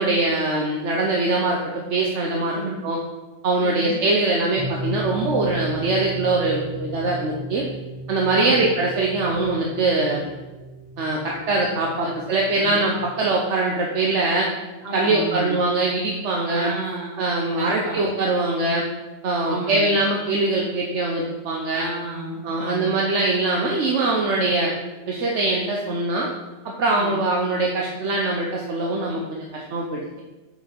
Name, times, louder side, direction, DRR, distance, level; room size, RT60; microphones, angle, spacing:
voice 1, 0.0-1.6 1.9-2.6 2.8-3.0 3.4-7.6 8.1-10.2 11.0-14.5 14.9-16.7 17.2-18.9 19.2-21.8 22.4-24.7 25.1-26.3 26.6-30.1, right 2 dB, 75° right, -1 dB, 1.2 m, -22 dB
voice 2, 3.6-4.0 8.3-8.7 12.0-12.1 12.5-12.8 14.8-15.6 16.5-17.3 17.6-18.0 19.4-19.9 21.7-23.0 24.5-24.7 26.9-27.2, right 2 dB, 60° right, 0 dB, 1.8 m, -32 dB
sound 1, 4.6-13.0, right 2 dB, 20° right, 1.8 m, -35 dB
6.7 x 5.5 x 5.2 m, 1.2 s
omnidirectional pair, 1.2 m